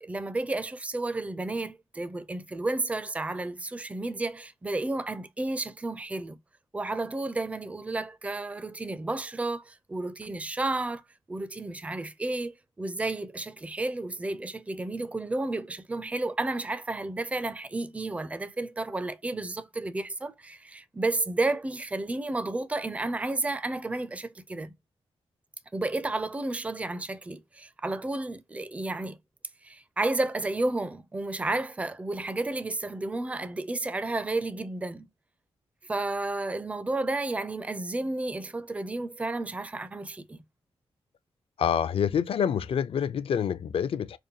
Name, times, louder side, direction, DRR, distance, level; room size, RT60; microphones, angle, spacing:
voice 1, 0.0-6.4 6.7-11.0 11.3-24.7 25.7-29.2 29.6-35.1 35.9-40.4, right 2 dB, 15° right, 0.4 m, -32 dB
voice 2, 41.6-44.2, left 8 dB, 65° left, 0.5 m, -27 dB
5.1 x 2.3 x 2.7 m
wide cardioid pair, 130°, 11 cm